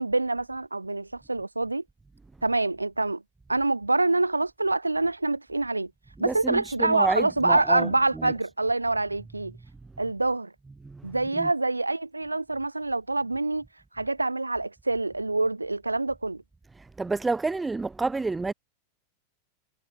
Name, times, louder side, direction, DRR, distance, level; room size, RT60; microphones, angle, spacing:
voice 1, 0.0-1.8 2.4-3.2 3.5-5.9 6.2-9.6 10.0-10.5 11.0-13.7 13.9-16.4, right 2 dB, 85° right, 3.4 m, -26 dB
voice 2, 6.2-7.9 8.2-8.3 10.8-11.0 11.4-11.5 17.0-18.5, right 3 dB, 10° right, 1.9 m, -29 dB
figure-of-eight pair, 90°, 0 cm